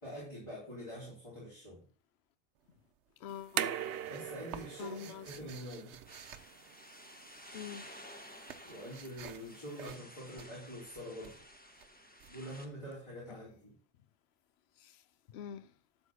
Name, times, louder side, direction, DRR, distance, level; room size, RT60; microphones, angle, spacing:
voice 1, 0.0-1.8 4.0-6.0 8.6-11.4 12.3-13.7, equal, 25° left, 4.2 m, -45 dB
sound 1, 2.6-3.1 3.4-7.4 7.7-13.3, right 8 dB, 85° right, 1.1 m, -53 dB
voice 2, 3.2-3.7 4.8-5.3 7.5-7.9 14.8-15.0 15.3-15.7, left 8 dB, 70° left, 0.8 m, -45 dB
sound 2, 3.3-9.9, right 9 dB, 65° right, 0.8 m, -42 dB
sound 3, 6.1-12.7, left 1 dB, 10° left, 1.2 m, -53 dB
12.0 x 4.2 x 6.3 m
omnidirectional pair, 1.1 m